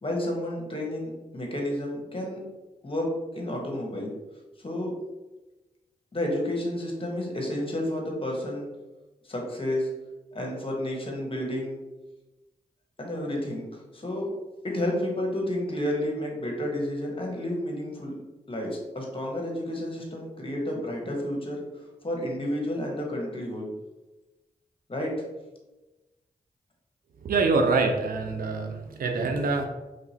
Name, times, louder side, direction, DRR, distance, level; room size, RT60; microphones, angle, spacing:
voice 1, 0.0-2.4 2.8-4.1 4.6-4.9 6.1-8.7 9.2-9.9 10.3-11.8 13.0-13.6 13.9-14.3 14.6-18.1 18.5-23.7 24.9-25.1, left 1 dB, 35° left, 0 dB, 1.1 m, -31 dB
voice 2, 27.2-29.7, right 3 dB, 70° right, 4 dB, 0.5 m, -25 dB
3.2 x 2.8 x 2.8 m, 1.1 s
supercardioid pair, 40°, 15 cm